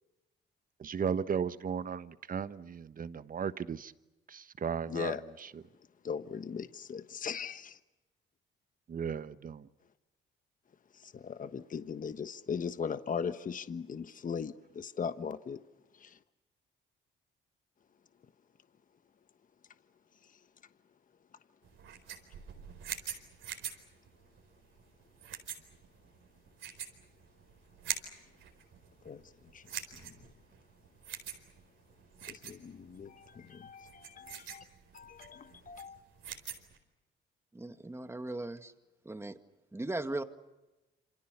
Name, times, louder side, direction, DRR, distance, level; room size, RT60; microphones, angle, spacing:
voice 1, 0.8-3.9 4.3-5.6 8.9-9.7, right 7 dB, 45° right, 1.3 m, -36 dB
voice 2, 4.9-5.2 6.0-7.8 11.0-15.6 16.0-16.2 29.0-29.2 29.5-30.2 32.3-34.6 34.9-36.0, left 6 dB, 40° left, 1.3 m, -39 dB
sound 1, 21.6-36.8, right 9 dB, 75° right, 4.5 m, -45 dB
voice 3, 37.5-38.7 39.0-39.4 39.7-40.2, right 2 dB, 15° right, 2.0 m, -38 dB
27.5 x 27.0 x 6.9 m
cardioid pair, 90°, 20 cm